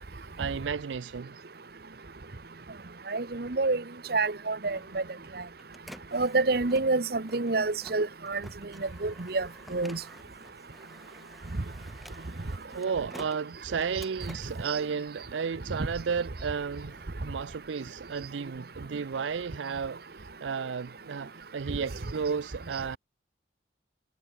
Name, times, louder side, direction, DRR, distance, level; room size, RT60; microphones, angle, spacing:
voice 1, 0.1-1.4 12.7-23.0, right 6 dB, 80° right, 0.5 m, -33 dB
voice 2, 3.1-3.8 4.1-5.0 6.1-8.4 9.0-10.0 14.7-14.8, right 3 dB, 55° right, 1.0 m, -28 dB
Printer, 4.3-15.7 16.1-18.0, equal, ahead, 3.9 m, -52 dB
head